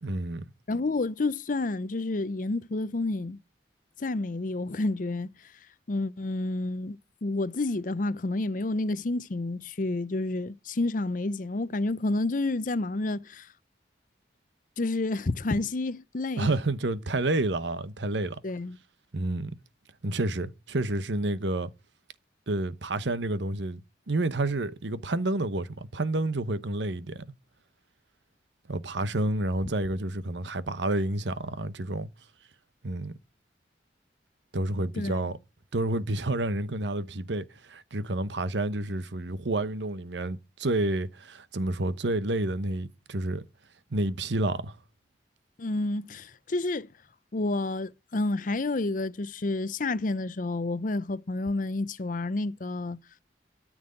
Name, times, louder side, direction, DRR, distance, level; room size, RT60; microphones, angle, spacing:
voice 1, 0.0-0.4 16.4-18.4 19.1-19.5 20.0-21.7 22.5-23.8 24.1-27.2 28.7-32.1 32.8-33.2 34.5-35.4 35.7-43.4 43.9-44.8, right 2 dB, 85° right, 1.0 m, -29 dB
voice 2, 0.7-3.4 4.0-5.3 5.9-13.5 14.8-16.5 18.4-18.8 35.0-35.1 45.6-46.9 47.3-53.0, left 2 dB, 45° left, 0.6 m, -29 dB
13.5 x 6.2 x 8.8 m
head